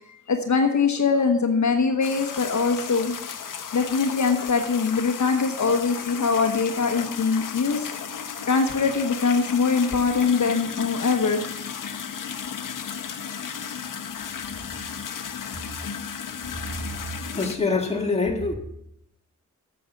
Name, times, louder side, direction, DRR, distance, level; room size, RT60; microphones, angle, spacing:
voice 1, 0.3-3.1 3.7-7.9 8.5-11.4, left 5 dB, 65° left, 5 dB, 1.1 m, -22 dB
sound 1, 2.0-17.6, left 7 dB, 90° left, 0.9 m, -34 dB
voice 2, 17.3-18.6, left 3 dB, 20° left, 1 dB, 1.8 m, -25 dB
9.1 x 7.0 x 7.2 m, 0.77 s
wide cardioid pair, 135°, 31 cm